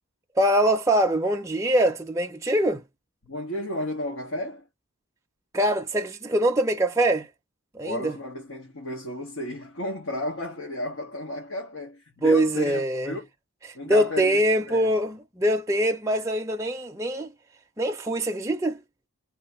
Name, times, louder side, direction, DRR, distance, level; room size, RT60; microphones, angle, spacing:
voice 1, 0.4-2.8 5.5-7.3 7.7-8.2 12.2-13.1 13.8-17.3 17.8-18.8, right 1 dB, 15° right, 0.5 m, -23 dB
voice 2, 3.2-4.7 7.8-13.3 13.7-14.9, left 1 dB, 70° left, 1.3 m, -33 dB
3.2 x 2.2 x 4.3 m
head